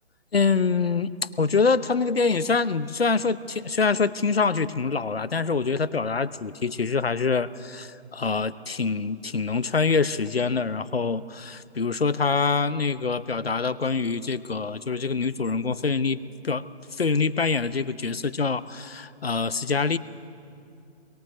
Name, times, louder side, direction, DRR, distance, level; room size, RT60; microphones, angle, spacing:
voice 1, 0.3-1.1 1.4-16.6 16.9-20.0, left 4 dB, 65° left, 16 dB, 0.9 m, -25 dB
24.5 x 23.0 x 6.7 m, 2.4 s
figure-of-eight pair, 150°, 33 cm